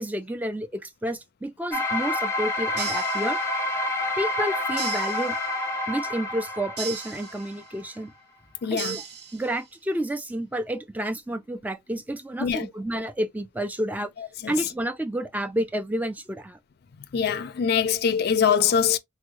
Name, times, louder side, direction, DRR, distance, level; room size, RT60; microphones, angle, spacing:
voice 1, 0.0-3.4 4.2-5.4 5.9-8.1 8.7-9.0 9.3-14.1 14.5-16.6, right 1 dB, 10° right, 0.4 m, -30 dB
sound 1, 1.7-7.6, left 2 dB, 15° left, 0.7 m, -28 dB
sound 2, 2.8-3.8 4.8-5.8 6.8-7.8 8.8-9.8, right 7 dB, 60° right, 0.8 m, -37 dB
voice 2, 8.6-9.0 12.4-12.7 14.2-14.5 17.1-19.0, left 7 dB, 55° left, 0.4 m, -23 dB
3.5 x 2.1 x 3.0 m
head